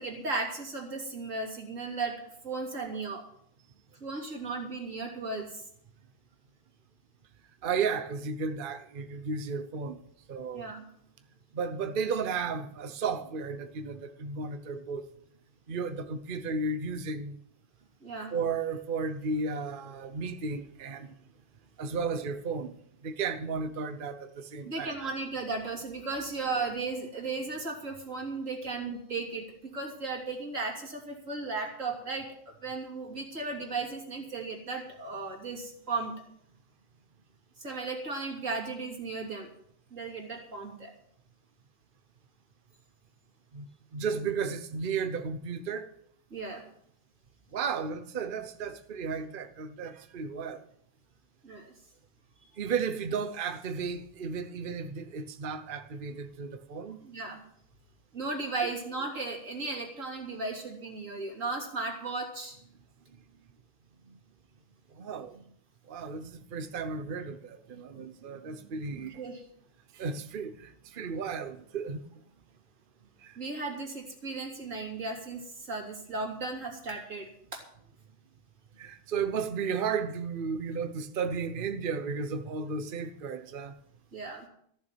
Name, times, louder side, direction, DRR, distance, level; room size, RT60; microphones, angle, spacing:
voice 1, 0.0-2.1 2.4-3.2 4.0-5.6 10.5-10.8 18.0-18.3 24.6-29.4 29.7-36.1 37.6-39.5 39.9-40.9 46.3-46.6 51.4-51.7 57.0-57.4 58.1-62.6 69.2-69.4 73.4-77.6 84.1-84.5, right 3 dB, 40° right, 3.2 m, -35 dB
voice 2, 7.6-10.0 10.3-10.7 11.5-15.0 15.7-17.4 18.3-21.1 21.8-22.7 23.0-25.1 43.5-45.9 47.5-50.6 52.6-57.0 64.1-64.2 64.9-65.4 65.9-69.2 69.9-72.0 73.2-73.4 78.8-83.7, right 5 dB, 60° right, 0.5 m, -34 dB
14.5 x 7.2 x 9.1 m
omnidirectional pair, 2.2 m